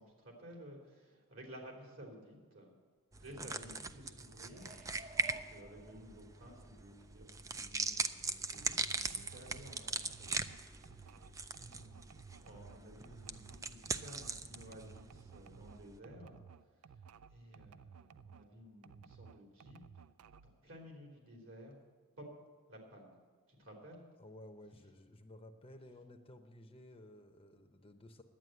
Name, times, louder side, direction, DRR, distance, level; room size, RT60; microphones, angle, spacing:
voice 1, 0.0-2.7 3.2-4.8 5.5-12.0 12.3-19.8 20.4-21.8 22.2-22.3 22.7-23.2 23.5-24.0, equal, 65° right, 0 dB, 3.3 m, -55 dB
sound 1, 3.1-16.0, right 4 dB, 15° right, 0.3 m, -41 dB
sound 2, 4.5-6.6 7.0-7.1, right 3 dB, 40° right, 0.9 m, -54 dB
sound 3, 8.5-18.5 18.8-20.6, right 6 dB, 85° right, 0.4 m, -57 dB
voice 2, 24.2-28.2, left 1 dB, 25° left, 6 dB, 0.7 m, -55 dB
11.0 x 8.9 x 7.8 m, 1.4 s
head